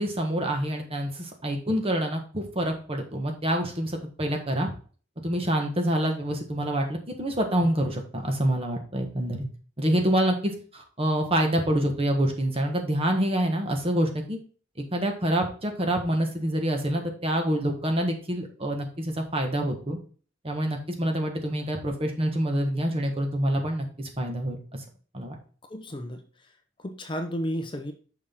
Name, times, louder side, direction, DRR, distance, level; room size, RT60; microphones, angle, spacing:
voice 1, 0.0-4.7 5.2-9.4 9.8-14.4 14.9-20.0 20.4-24.8 25.1-25.4, right 1 dB, 30° right, 3 dB, 1.4 m, -27 dB
voice 2, 25.7-26.2 26.8-27.9, equal, 25° left, 6 dB, 0.7 m, -32 dB
6.4 x 5.9 x 3.7 m, 0.40 s
head